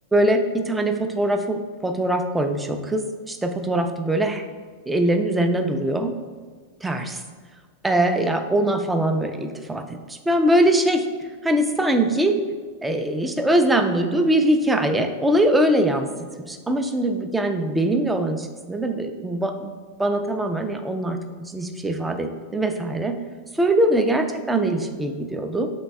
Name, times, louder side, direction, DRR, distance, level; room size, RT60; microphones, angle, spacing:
voice 1, 0.1-4.4 4.9-6.1 6.8-7.2 7.8-11.0 11.4-12.4 12.8-16.1 16.4-19.7 20.0-23.1 23.5-25.7, right 1 dB, 10° right, 6 dB, 0.3 m, -22 dB
3.8 x 2.2 x 4.5 m, 1.5 s
figure-of-eight pair, 90°, 0 cm